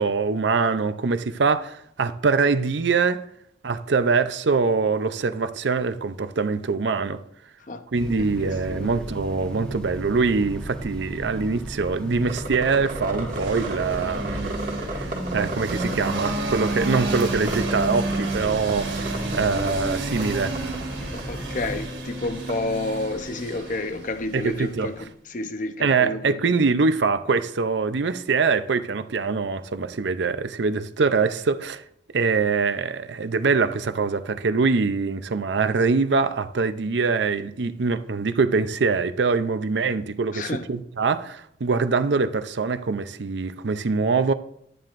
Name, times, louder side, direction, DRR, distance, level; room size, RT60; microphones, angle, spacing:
voice 1, 0.0-3.2 3.6-7.2 7.9-14.6 14.9-20.6 21.1-21.2 24.3-24.9 25.8-31.8 32.1-44.3, right 4 dB, 75° right, 0.6 m, -23 dB
Train, 7.9-21.8, right 1 dB, 5° left, 1.1 m, -36 dB
voice 2, 8.2-8.9 21.1-26.4 40.3-40.7, left 2 dB, 45° left, 0.7 m, -30 dB
sound 1, 12.3-16.4 16.7-17.9 18.1-18.7 19.0-19.7 20.2-20.3 20.5-20.8 21.2-21.3 21.6-21.7 22.5-22.6, right 2 dB, 45° right, 2.0 m, -33 dB
sound 2, 13.3-25.0, right 2 dB, 90° right, 2.5 m, -31 dB
11.0 x 10.0 x 2.6 m
head